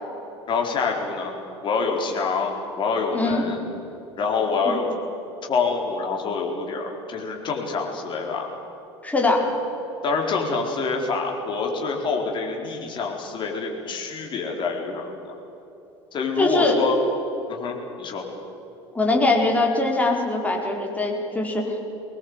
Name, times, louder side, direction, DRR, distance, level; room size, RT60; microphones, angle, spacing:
voice 1, 0.5-1.4 1.6-3.6 4.2-4.9 5.5-8.5 10.0-15.3 16.1-17.0 17.5-18.3, left 4 dB, 35° left, 1 dB, 4.4 m, -26 dB
voice 2, 9.0-9.5 16.4-16.8 18.9-21.8, left 2 dB, 10° left, 0 dB, 4.8 m, -22 dB
23.5 x 20.0 x 8.2 m, 3.0 s
figure-of-eight pair, 70°, 14 cm